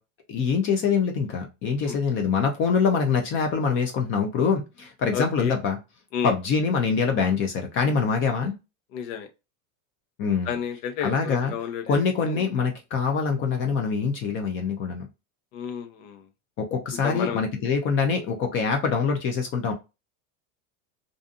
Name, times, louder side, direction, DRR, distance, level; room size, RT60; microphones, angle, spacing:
voice 1, 0.3-5.8 6.2-8.5 10.2-10.5 11.0-11.5 11.9-15.1 16.6-19.7, left 5 dB, 30° left, 0.4 m, -24 dB
voice 2, 5.1-5.5 6.1-6.3 8.9-9.3 10.5-12.4 15.5-16.2 17.0-17.4, left 8 dB, 75° left, 0.8 m, -31 dB
2.5 x 2.4 x 2.4 m
supercardioid pair, 145°, 40 cm